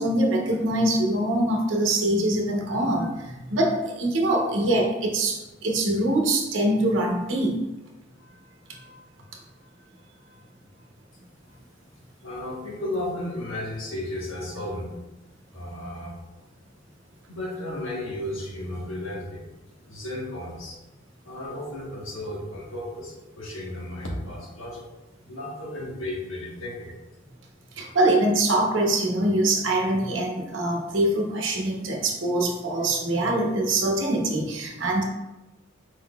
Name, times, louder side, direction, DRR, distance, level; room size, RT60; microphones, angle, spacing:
voice 1, 0.0-7.6 8.7-8.8 27.7-35.0, right 1 dB, 70° right, 0 dB, 0.8 m, -24 dB
voice 2, 12.2-14.9 15.5-16.2 17.3-19.4 19.8-20.8 21.2-24.9 25.3-26.9, left 1 dB, 85° left, -3 dB, 1.2 m, -34 dB
4.7 x 3.9 x 2.3 m, 1.0 s
head